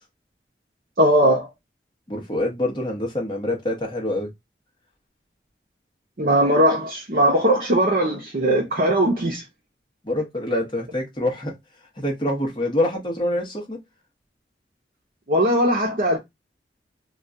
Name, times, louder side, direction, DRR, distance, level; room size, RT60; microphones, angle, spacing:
voice 1, 1.0-1.5 6.2-9.4 15.3-16.2, right 1 dB, 50° right, 0.6 m, -19 dB
voice 2, 2.1-4.3 10.0-11.6 12.0-13.8, left 1 dB, 25° left, 0.8 m, -25 dB
2.3 x 2.2 x 3.7 m
head